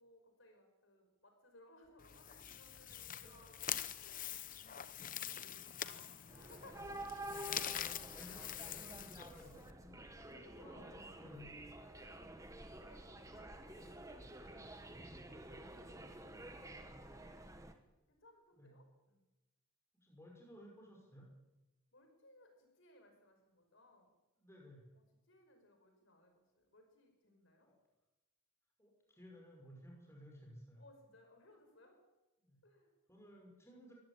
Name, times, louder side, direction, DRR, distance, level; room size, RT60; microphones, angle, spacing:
voice 1, 0.0-4.6 5.3-7.8 8.1-8.6 9.9-11.5 11.8-12.2 12.7-17.5 18.1-19.2 21.9-24.1 24.9-27.7 30.8-32.0 32.6-32.9, left 1 dB, 60° left, 4 dB, 5.5 m, -65 dB
sound 1, 2.0-9.7, left 10 dB, 35° left, 0.8 m, -45 dB
voice 2, 3.0-3.3 7.5-9.9 10.3-11.5 18.6-18.8 19.9-21.3 24.4-24.8 27.6-27.7 28.8-30.8 32.4-32.6 33.1-33.9, equal, 10° left, 0 dB, 5.6 m, -57 dB
sound 2, 6.3-17.7, right 1 dB, 15° right, 1.7 m, -50 dB
24.0 x 15.5 x 8.8 m, 1.0 s
head